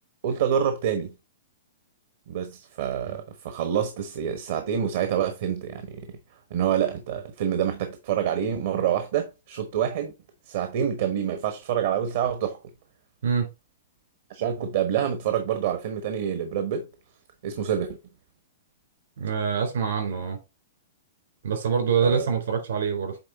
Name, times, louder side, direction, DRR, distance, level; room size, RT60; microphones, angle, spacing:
voice 1, 0.2-1.1 2.3-6.2 6.5-10.1 10.4-12.6 14.3-16.9 17.4-18.0 22.0-22.3, right 9 dB, 60° right, 1.1 m, -27 dB
voice 2, 19.2-20.4 21.4-23.2, right 6 dB, 75° right, 3.8 m, -25 dB
8.6 x 3.4 x 4.1 m
hypercardioid pair, 130°, 0 cm